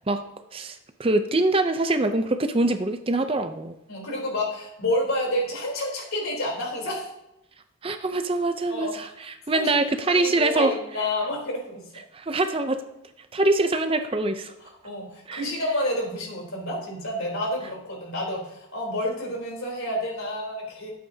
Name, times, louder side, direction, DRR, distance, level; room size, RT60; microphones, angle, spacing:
voice 1, 0.5-3.7 7.8-10.7 12.1-12.8 13.3-14.5 15.3-15.4, right 2 dB, 25° right, 8 dB, 0.5 m, -24 dB
voice 2, 3.9-7.1 8.7-8.9 9.5-9.6 10.1-11.9 14.8-20.9, left 1 dB, 80° left, -1 dB, 3.6 m, -29 dB
13.0 x 8.5 x 2.8 m, 0.86 s
head